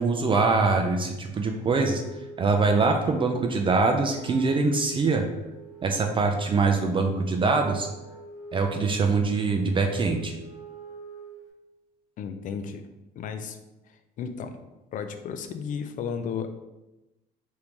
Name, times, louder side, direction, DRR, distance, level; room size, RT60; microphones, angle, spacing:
voice 1, 0.0-2.0 2.4-5.2 5.8-7.9 8.5-10.3, right 4 dB, 30° right, 3 dB, 0.4 m, -23 dB
Wind instrument woodwind instrument, 1.7-11.5, right 4 dB, 70° left, 0.8 m, -45 dB
voice 2, 12.2-12.8 13.2-13.6 14.2-14.6 14.9-16.5, left 6 dB, 50° left, 8 dB, 0.4 m, -33 dB
3.5 x 2.6 x 2.9 m, 0.99 s
cardioid pair, 110°, 17 cm